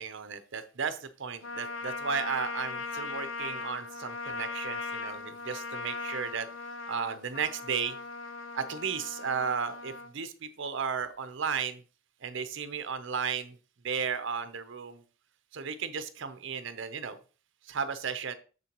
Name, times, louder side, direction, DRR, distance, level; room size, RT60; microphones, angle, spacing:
voice 1, 0.0-6.5 6.9-8.0 8.5-11.8 12.2-13.6 13.8-15.0 15.5-17.2 17.7-18.3, right 6 dB, 65° right, 11 dB, 0.7 m, -34 dB
Trumpet, 1.4-10.1, left 3 dB, 70° left, 0.8 m, -39 dB
6.8 x 6.7 x 3.0 m, 0.36 s
head